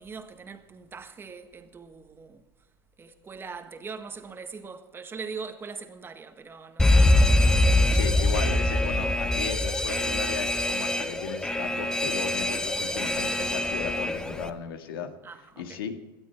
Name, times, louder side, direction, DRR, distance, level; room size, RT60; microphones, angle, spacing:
voice 1, 0.0-2.4 3.0-7.8 15.2-15.8, right 5 dB, 20° right, 1.5 m, -41 dB
Alarm, 6.8-14.5, left 1 dB, 5° left, 0.9 m, -23 dB
voice 2, 7.9-16.0, left 7 dB, 85° left, 2.0 m, -36 dB
18.5 x 12.0 x 4.5 m
supercardioid pair, 120°, 12 cm